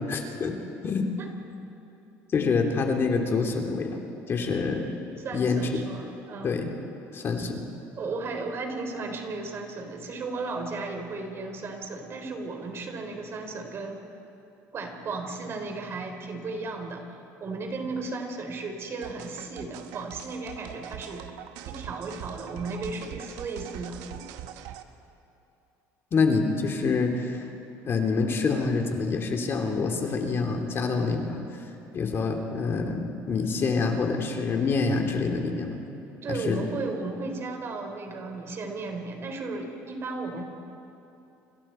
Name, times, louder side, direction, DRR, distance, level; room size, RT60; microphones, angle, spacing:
voice 1, 0.1-0.5 0.8-1.0 2.3-4.0 4.3-5.0 5.3-5.7 6.4-6.7 7.1-7.6 26.1-27.5 27.8-31.6 31.9-35.8 36.3-36.6, left 4 dB, 40° left, 2 dB, 2.7 m, -26 dB
voice 2, 5.2-6.6 8.0-14.1 14.7-17.0 17.4-21.3 21.7-24.0 36.2-40.4, right 3 dB, 40° right, 4 dB, 3.7 m, -35 dB
sound 1, 19.0-24.8, right 11 dB, 85° right, 1.2 m, -42 dB
30.0 x 27.0 x 4.4 m, 2.8 s
cardioid pair, 115°, 6 cm